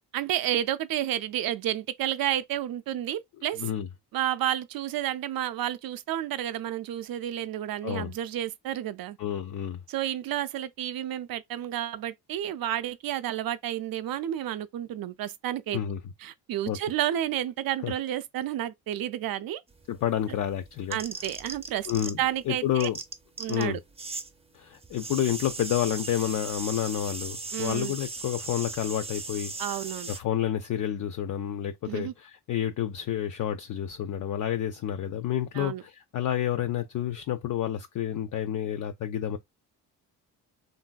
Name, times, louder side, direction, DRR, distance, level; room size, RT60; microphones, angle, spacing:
voice 1, 0.1-3.6 4.1-9.2 9.9-15.8 16.2-19.6 20.9-21.9 22.2-22.9 23.4-23.8 27.5-27.9 29.6-30.1 31.9-32.1 35.5-35.8, right 12 dB, 55° right, 0.5 m, -31 dB
voice 2, 9.2-9.8 15.7-16.0 16.7-16.8 17.8-17.9 19.9-21.0 21.9-22.2 22.5-23.0 23.5-23.8 24.5-29.5 30.1-39.4, left 11 dB, 45° left, 0.5 m, -29 dB
sound 1, 19.7-22.4 22.6-24.3 24.5-30.2, right 3 dB, 15° right, 0.6 m, -38 dB
3.1 x 2.7 x 2.2 m
supercardioid pair, 60°, 44 cm